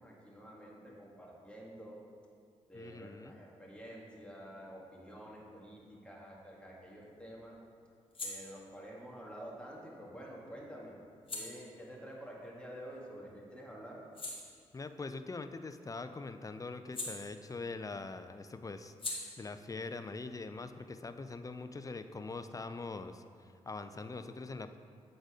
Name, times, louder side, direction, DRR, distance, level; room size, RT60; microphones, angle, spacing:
voice 1, 0.0-2.0 2.7-7.6 8.2-11.0 11.3-14.0, equal, 10° left, -3 dB, 1.8 m, -49 dB
voice 2, 2.7-3.4 14.7-18.9 19.4-24.8, left 3 dB, 25° left, 9 dB, 0.5 m, -43 dB
sound 1, 6.4-13.2 13.6-17.9 18.1-21.5, left 2 dB, 45° left, 1.6 m, -48 dB
7.9 x 4.0 x 5.0 m, 2.2 s
supercardioid pair, 50°, 13 cm